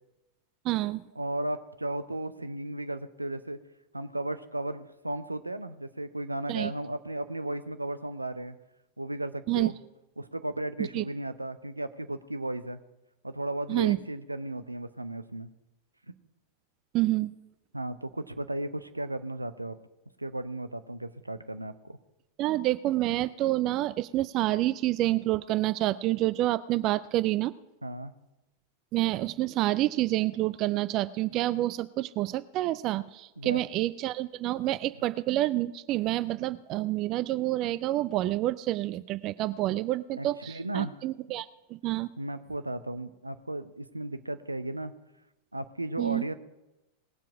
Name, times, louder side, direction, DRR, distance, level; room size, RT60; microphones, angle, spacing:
voice 1, 0.6-1.1 6.5-6.7 9.5-9.7 10.8-11.0 13.7-14.0 16.9-17.3 22.4-27.5 28.9-42.1 46.0-46.3, right 16 dB, 40° right, 16 dB, 0.4 m, -28 dB
voice 2, 1.2-3.6 3.9-8.6 9.0-9.7 10.2-12.8 13.2-15.5 17.7-19.8 20.2-22.0 27.8-28.1 33.4-33.6 40.2-40.9 42.2-44.9 45.5-46.3, right 1 dB, 85° right, 11 dB, 0.7 m, -35 dB
19.5 x 7.5 x 4.8 m, 0.96 s
figure-of-eight pair, 90°, 0 cm